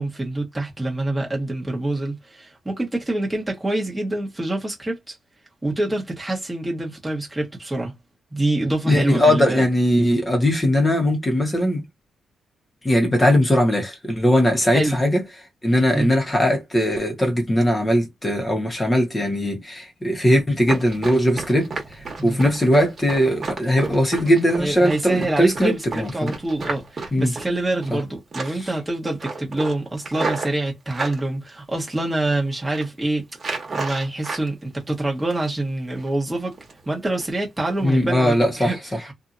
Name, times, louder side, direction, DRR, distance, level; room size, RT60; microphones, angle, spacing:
voice 1, 0.0-5.2 5.6-7.9 8.3-9.6 14.7-15.0 15.9-16.1 22.2-22.4 24.6-33.2 33.7-36.5 36.9-39.1, right 2 dB, 10° right, 1.2 m, -26 dB
voice 2, 8.9-11.8 12.8-15.2 15.6-26.3 27.1-27.3 27.9-28.0 37.8-38.7, equal, 15° left, 1.1 m, -20 dB
Run, 20.6-28.0 28.3-28.7 29.0-31.2 31.8-32.3 32.6-32.9 33.4-34.5 34.8-35.6 36.0-36.1 36.5-36.9 37.2-37.3 37.8-37.9 38.3-38.4, right 3 dB, 30° right, 1.2 m, -32 dB
2.8 x 2.6 x 2.5 m
cardioid pair, 150°, 0 cm